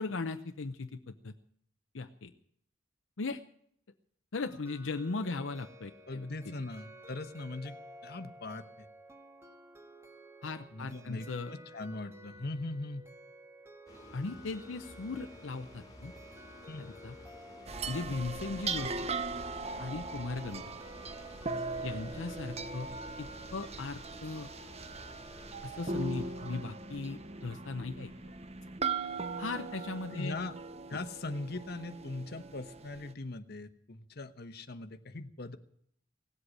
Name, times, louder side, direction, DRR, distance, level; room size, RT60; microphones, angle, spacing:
voice 1, 0.0-1.3 1.9-2.3 3.2-3.4 4.3-6.3 10.4-11.5 14.1-16.1 17.0-17.1 17.9-19.1 19.8-20.7 21.8-22.9 23.2-24.5 25.6-28.3 29.4-30.4 30.9-31.0, left 3 dB, 75° left, 7 dB, 0.7 m, -38 dB
sound 1, 4.3-23.5, equal, 15° right, 1.6 m, -53 dB
voice 2, 6.1-7.8 8.0-8.9 10.7-13.0 16.7-16.9 30.1-30.5 30.9-35.6, left 2 dB, 55° left, 9 dB, 1.1 m, -40 dB
sound 2, 13.9-26.9, left 1 dB, 20° left, 2.3 m, -54 dB
sound 3, 17.7-33.1, right 4 dB, 35° right, 0.8 m, -39 dB
17.5 x 8.0 x 9.9 m, 0.67 s
head